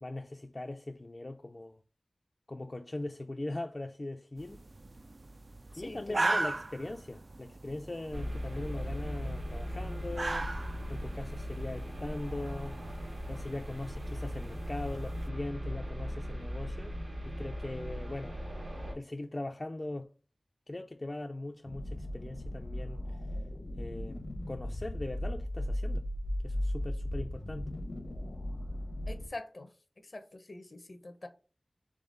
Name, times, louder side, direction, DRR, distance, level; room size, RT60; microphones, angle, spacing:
voice 1, 0.0-1.8 2.5-4.6 5.8-10.5 10.9-12.8 13.3-17.0 17.2-18.4 18.9-20.1 20.7-23.2 23.8-26.1 26.4-27.7, left 2 dB, 40° left, 0.4 m, -40 dB
sound 1, 4.4-15.3, right 2 dB, 60° right, 0.3 m, -39 dB
voice 2, 5.7-6.4 29.1-29.7 30.0-31.3, left 2 dB, 65° left, 0.7 m, -45 dB
sound 2, 8.1-18.9, equal, 90° right, 1.4 m, -38 dB
sound 3, 21.6-29.3, left 1 dB, 80° left, 1.1 m, -36 dB
3.8 x 3.4 x 3.8 m
wide cardioid pair, 55°, 0 cm